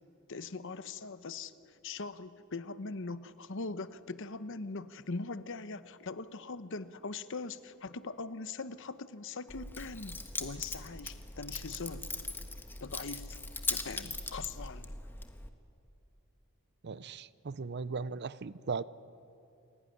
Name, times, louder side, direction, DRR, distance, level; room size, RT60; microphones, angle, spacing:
voice 1, 0.3-12.1 12.8-13.4 13.7-15.0, left 3 dB, 60° left, 13 dB, 0.9 m, -41 dB
Keys jangling, 9.5-15.5, left 3 dB, 10° left, 1.3 m, -40 dB
voice 2, 16.8-18.8, right 4 dB, 50° right, 18 dB, 0.6 m, -38 dB
28.0 x 18.0 x 10.0 m, 2.7 s
head